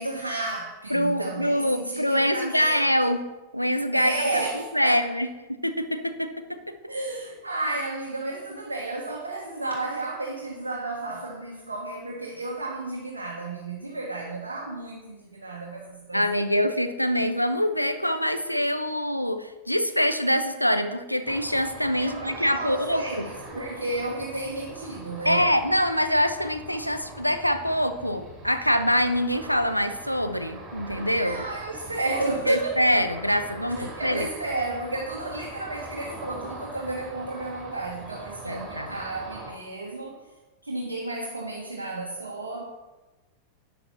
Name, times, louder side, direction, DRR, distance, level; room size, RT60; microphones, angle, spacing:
voice 1, 0.0-2.8 3.9-5.0 6.9-16.4 21.9-25.5 31.2-32.8 33.7-40.2 40.6-42.6, right 2 dB, 75° right, -2 dB, 1.9 m, -32 dB
voice 2, 0.9-3.3 3.5-4.1 4.5-6.3 6.7-6.8 16.1-23.3 25.2-31.4 32.5-34.3 38.4-39.0, equal, 90° left, 8 dB, 0.9 m, -25 dB
Ocean, 21.3-39.5, right 2 dB, 20° right, 3.8 m, -42 dB
12.0 x 8.9 x 4.2 m, 1.1 s
figure-of-eight pair, 90°, 0 cm